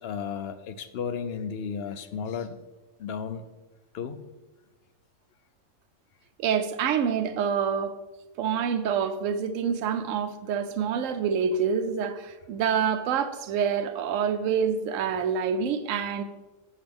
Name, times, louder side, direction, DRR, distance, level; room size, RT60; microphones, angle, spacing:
voice 1, 0.0-2.6 3.0-3.4 3.9-4.2, left 6 dB, 65° left, 0.7 m, -33 dB
voice 2, 6.4-7.9 8.4-16.2, right 7 dB, 80° right, 1.0 m, -27 dB
8.1 x 7.3 x 3.4 m
omnidirectional pair, 1.3 m